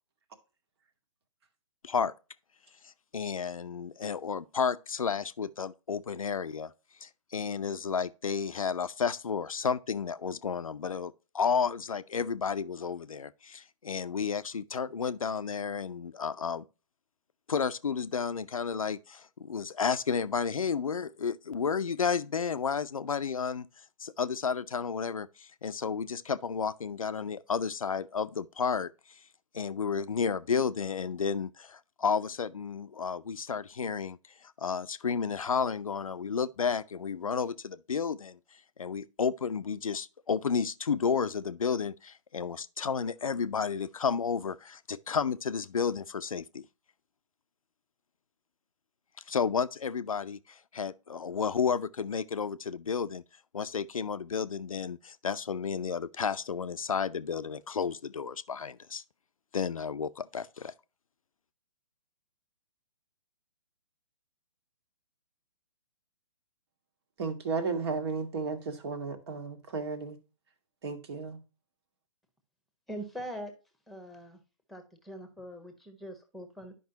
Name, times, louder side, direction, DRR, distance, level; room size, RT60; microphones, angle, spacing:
voice 1, 2.8-6.7 7.0-16.6 17.5-23.7 24.0-28.9 29.5-38.4 38.8-46.7 49.3-53.2 53.5-59.0 59.5-60.7, left 6 dB, 75° left, 0.6 m, -32 dB
voice 2, 67.2-70.2 70.8-71.4, right 4 dB, 50° right, 1.7 m, -34 dB
voice 3, 72.9-73.5 73.9-74.4 74.7-76.7, equal, ahead, 1.2 m, -42 dB
10.5 x 5.4 x 2.8 m
figure-of-eight pair, 130°, 18 cm